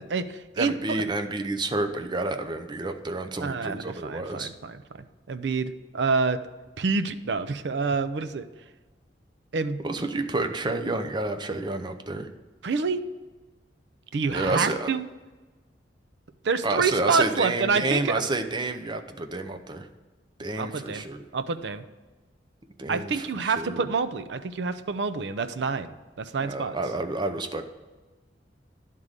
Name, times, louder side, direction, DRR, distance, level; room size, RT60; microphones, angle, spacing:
voice 1, 0.0-1.0 3.4-4.8 5.3-6.4 6.8-8.5 9.5-10.1 12.6-13.0 14.1-15.0 16.4-18.2 20.6-21.0 21.3-21.8 22.9-25.9 26.2-26.8, right 4 dB, 70° right, 11 dB, 0.5 m, -27 dB
voice 2, 0.6-4.5 9.8-12.3 14.3-14.9 16.6-19.9 20.4-21.2 22.8-23.8 26.4-27.6, right 2 dB, 25° right, 7 dB, 0.6 m, -29 dB
11.0 x 3.7 x 6.5 m, 1.3 s
head